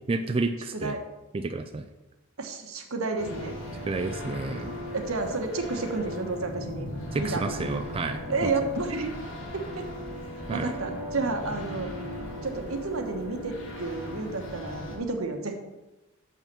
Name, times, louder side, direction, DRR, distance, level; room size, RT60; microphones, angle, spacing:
voice 1, 0.1-0.9 1.3-1.8 3.9-4.7 7.1-8.2 10.5-10.7, right 3 dB, 25° right, 6 dB, 0.4 m, -30 dB
voice 2, 2.4-3.5 4.9-6.9 7.2-7.4 8.3-9.1 9.5-9.9 10.5-11.9 12.4-13.5 13.8-15.5, right 3 dB, 85° right, 5 dB, 1.2 m, -31 dB
sound 1, 3.2-15.0, left 1 dB, 65° left, 2.0 m, -37 dB
7.2 x 5.6 x 6.0 m, 1.0 s
head